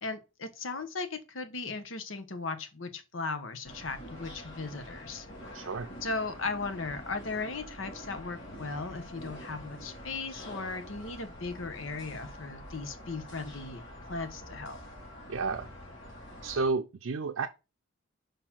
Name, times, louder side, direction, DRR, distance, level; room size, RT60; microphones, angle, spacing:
voice 1, 0.0-5.3 6.0-13.8 14.1-14.8, left 3 dB, 75° left, 1.1 m, -37 dB
sound 1, 3.6-16.7, equal, 60° left, 3.1 m, -46 dB
voice 2, 5.5-5.9 15.3-15.7 16.4-17.5, right 4 dB, 75° right, 0.5 m, -31 dB
5.3 x 4.4 x 5.8 m
head